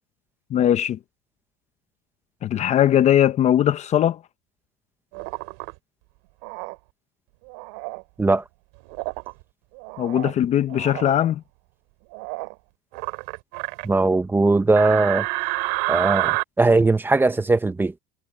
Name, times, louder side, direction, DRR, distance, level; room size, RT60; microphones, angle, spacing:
voice 1, 0.5-1.0 2.4-4.2 10.0-11.4, left 11 dB, 35° left, 0.8 m, -20 dB
sound 1, 5.1-5.7 6.4-6.7 7.5-8.0 8.9-9.3 9.8-10.4 10.7-11.1 12.1-12.5 12.9-13.9 14.8-16.4, right 28 dB, 70° right, 3.8 m, -28 dB
voice 2, 13.8-15.3 15.9-17.9, right 3 dB, 10° right, 1.1 m, -19 dB
supercardioid pair, 130°, 21 cm